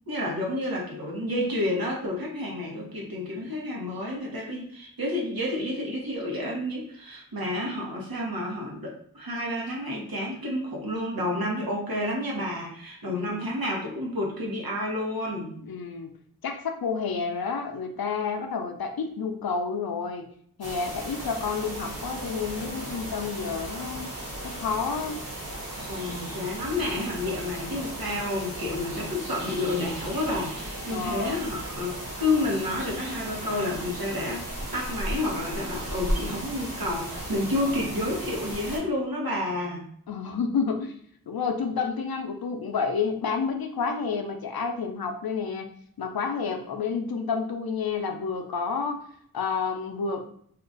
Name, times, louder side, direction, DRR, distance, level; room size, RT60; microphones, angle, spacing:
voice 1, 0.1-15.6 25.9-34.4 34.7-39.8, left 1 dB, 80° right, -3 dB, 1.2 m, -30 dB
voice 2, 13.1-13.4 15.7-16.1 16.4-20.3 20.6-24.1 24.4-25.2 30.9-31.4 37.6-37.8 40.1-41.0 41.3-45.7 46.0-49.0 49.3-50.3, left 5 dB, 90° left, 5 dB, 0.5 m, -30 dB
sound 1, 20.6-38.8, right 1 dB, 60° right, 1.3 m, -36 dB
2.8 x 2.4 x 3.8 m, 0.62 s
wide cardioid pair, 45°, 35 cm